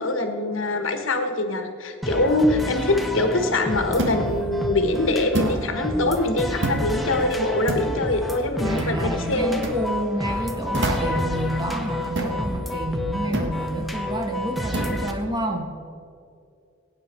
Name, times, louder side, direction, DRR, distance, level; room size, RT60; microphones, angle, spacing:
voice 1, 0.0-9.6, left 2 dB, 80° left, 6 dB, 1.5 m, -23 dB
sound 1, 2.0-15.1, equal, ahead, 1.0 m, -30 dB
sound 2, 4.0-4.3 5.3-5.6 6.6-6.9 7.7-8.0 8.8-9.0 9.6-9.8 10.7-11.2 12.2-12.4 13.3-13.6 14.7-15.0, right 1 dB, 60° right, 1.7 m, -26 dB
voice 2, 8.6-15.7, equal, 20° right, 3 dB, 1.4 m, -29 dB
17.5 x 9.4 x 4.5 m, 2.4 s
head